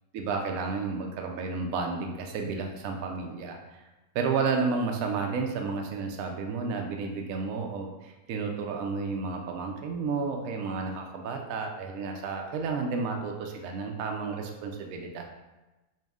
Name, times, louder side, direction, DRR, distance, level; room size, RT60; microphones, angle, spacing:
voice 1, 0.1-3.9 4.1-15.2, right 4 dB, 75° right, 2 dB, 0.9 m, -31 dB
5.2 x 2.0 x 3.5 m, 1.1 s
omnidirectional pair, 1.6 m